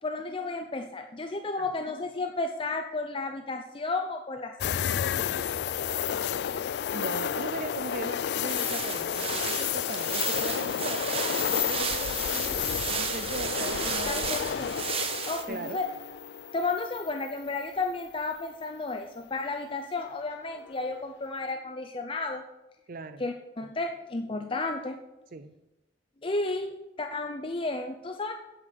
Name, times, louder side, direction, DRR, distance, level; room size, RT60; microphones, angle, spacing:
voice 1, 0.0-4.5 14.1-14.4 15.3-15.9 16.5-22.4 23.2-25.0 26.2-28.3, left 3 dB, 30° left, 5 dB, 0.6 m, -32 dB
sound 1, 4.6-17.6 18.0-18.1 20.6-21.0, left 9 dB, 65° left, 0.3 m, -31 dB
voice 2, 6.9-11.0 11.4-14.6 15.5-15.8 22.9-23.3 25.3-25.5, right 3 dB, 55° right, 10 dB, 0.5 m, -39 dB
sound 2, 8.5-15.4, right 6 dB, 35° right, 0.9 m, -34 dB
8.8 x 8.1 x 6.6 m, 0.97 s
head